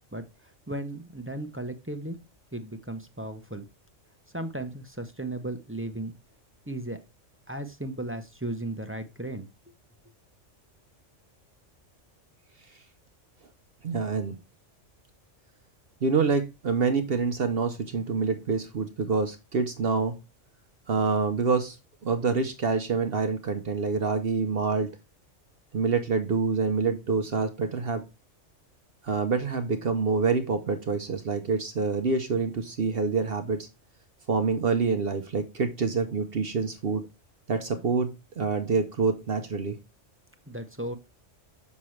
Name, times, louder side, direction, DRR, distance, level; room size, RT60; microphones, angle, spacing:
voice 1, 0.1-2.2 2.5-3.7 4.3-6.1 6.7-7.0 7.5-9.5 40.5-41.0, right 1 dB, 15° right, 6 dB, 0.6 m, -35 dB
voice 2, 13.8-14.4 16.0-20.1 20.9-21.8 22.0-24.9 25.7-28.0 29.0-33.7 34.3-37.0 37.5-39.7, right 4 dB, 55° right, 8 dB, 0.9 m, -26 dB
7.1 x 5.9 x 3.1 m, 0.26 s
omnidirectional pair, 1.3 m